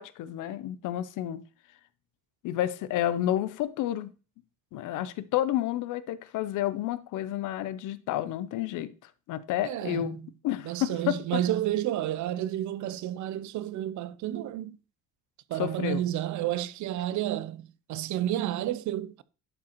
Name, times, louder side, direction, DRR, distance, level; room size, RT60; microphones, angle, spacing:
voice 1, 0.0-1.4 2.4-4.1 4.7-8.9 9.3-11.4 15.5-16.0, left 12 dB, 90° left, 0.6 m, -30 dB
voice 2, 9.6-10.2 10.6-14.8 15.5-19.2, right 12 dB, 75° right, 0.5 m, -31 dB
11.0 x 4.9 x 2.9 m
cardioid pair, 90°, 30 cm